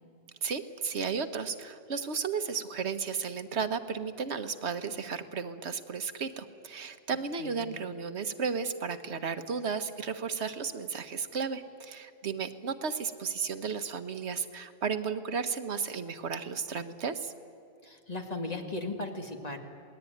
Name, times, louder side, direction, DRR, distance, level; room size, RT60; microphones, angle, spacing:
voice 1, 0.4-17.3, right 5 dB, 85° right, 9 dB, 1.4 m, -34 dB
voice 2, 17.8-19.6, left 2 dB, 40° left, 3 dB, 2.3 m, -37 dB
27.0 x 19.0 x 9.3 m, 2.6 s
omnidirectional pair, 1.1 m